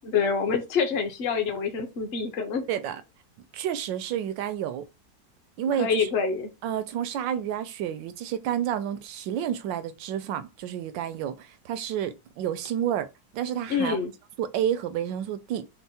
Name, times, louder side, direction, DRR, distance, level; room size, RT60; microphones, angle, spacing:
voice 1, 0.1-2.7 5.8-6.5 13.7-14.1, left 6 dB, 45° left, 0.9 m, -26 dB
voice 2, 2.7-3.0 3.5-4.8 5.6-6.1 6.6-13.1 13.3-14.0 14.4-15.7, right 10 dB, 80° right, 1.3 m, -30 dB
4.4 x 2.1 x 4.1 m
omnidirectional pair, 2.0 m